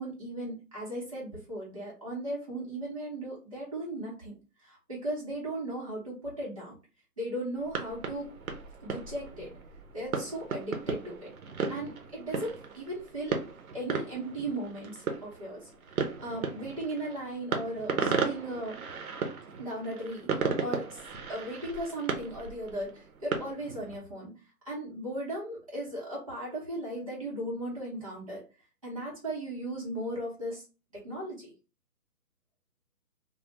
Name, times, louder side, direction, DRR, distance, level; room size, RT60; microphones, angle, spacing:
voice 1, 0.0-6.8 7.2-8.3 8.8-9.5 9.9-11.3 11.7-13.3 13.7-15.7 16.2-18.8 19.6-21.0 21.3-24.4 24.6-28.4 28.8-30.6 30.9-31.5, right 1 dB, 25° right, -7 dB, 0.8 m, -37 dB
sound 1, 7.6-24.0, right 5 dB, 65° right, 0.6 m, -35 dB
2.2 x 2.1 x 2.8 m, 0.33 s
hypercardioid pair, 170°, 45 cm